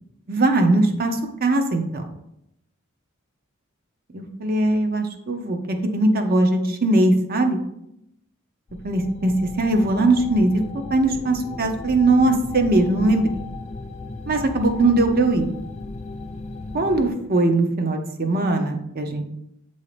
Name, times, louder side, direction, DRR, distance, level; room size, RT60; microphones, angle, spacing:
voice 1, 0.3-2.1 4.1-7.6 8.8-10.5 10.9-13.3 14.3-15.5 16.7-19.2, right 2 dB, 45° right, 5 dB, 0.7 m, -20 dB
sound 1, 8.7-17.1, left 2 dB, 35° left, 0.4 m, -36 dB
8.2 x 2.8 x 4.9 m, 0.81 s
head